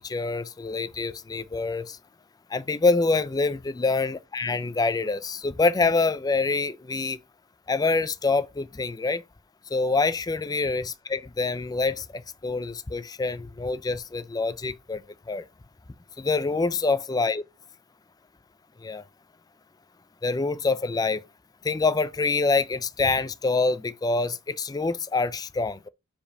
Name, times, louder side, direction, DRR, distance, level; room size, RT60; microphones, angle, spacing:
voice 1, 0.0-2.0 2.5-7.2 7.7-9.2 9.7-15.0 15.3-15.4 16.2-17.4 18.8-19.0 20.2-21.2 21.6-25.9, left 3 dB, 20° left, 0.4 m, -26 dB
5.1 x 5.0 x 6.1 m
head